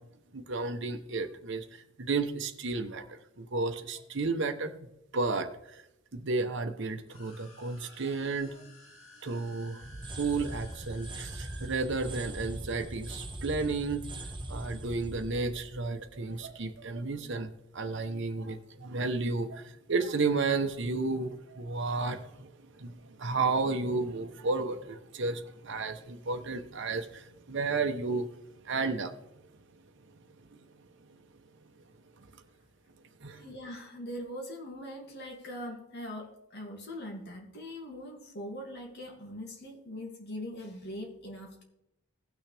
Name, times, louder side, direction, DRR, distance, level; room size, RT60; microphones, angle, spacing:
voice 1, 0.3-4.8 5.1-5.8 6.1-8.6 9.2-9.8 10.2-14.1 14.5-28.3 28.6-29.1 30.5-30.6 32.2-32.3 33.2-33.4, right 3 dB, 60° right, 6 dB, 0.9 m, -32 dB
sound 1, 7.0-11.7, equal, 75° left, 2.9 m, -54 dB
sound 2, 9.8-16.7, right 1 dB, 25° right, 1.3 m, -41 dB
voice 2, 33.3-41.6, left 1 dB, 55° left, 1 dB, 2.4 m, -41 dB
17.0 x 6.3 x 3.4 m, 0.82 s
head